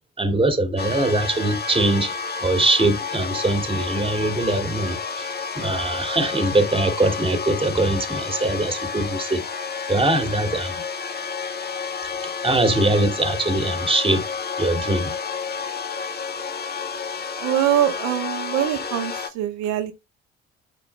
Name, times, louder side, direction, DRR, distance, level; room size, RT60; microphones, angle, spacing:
voice 1, 0.2-2.1 2.4-5.3 5.5-9.4 9.9-10.8 12.2-14.3 14.6-15.1, right 2 dB, 20° right, 2.2 m, -22 dB
sound 1, 0.8-19.3, left 5 dB, 35° left, 1.5 m, -30 dB
voice 2, 17.4-19.9, right 11 dB, 70° right, 1.7 m, -23 dB
9.2 x 5.8 x 3.3 m
hypercardioid pair, 55°, 29 cm